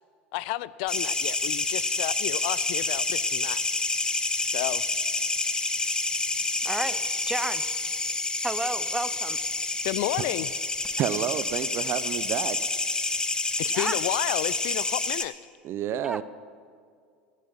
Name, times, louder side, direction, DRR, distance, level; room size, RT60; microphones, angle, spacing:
voice 1, 0.3-3.6 4.5-4.8 9.8-10.5 13.6-15.3, left 17 dB, 60° left, 18 dB, 0.5 m, -31 dB
sound 1, 0.9-15.3, left 3 dB, 15° left, 1.1 m, -28 dB
voice 2, 6.6-7.0 7.3-7.6 8.4-9.4 13.7-14.0 16.0-16.2, right 2 dB, 10° right, 13 dB, 0.9 m, -31 dB
voice 3, 11.0-12.6 15.6-16.2, right 11 dB, 45° right, 15 dB, 0.7 m, -29 dB
18.0 x 13.0 x 5.8 m, 2.1 s
hypercardioid pair, 80°, 6 cm